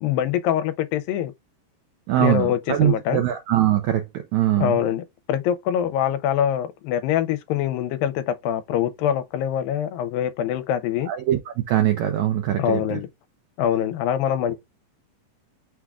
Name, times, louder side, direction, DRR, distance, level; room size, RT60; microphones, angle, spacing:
voice 1, 0.0-1.3 2.2-3.2 4.6-11.1 12.6-13.1 13.6-14.6, left 10 dB, 90° left, 2.4 m, -24 dB
voice 2, 2.1-4.8 11.1-11.4 11.7-13.0, right 12 dB, 85° right, 1.6 m, -22 dB
6.0 x 2.3 x 3.5 m
omnidirectional pair, 4.1 m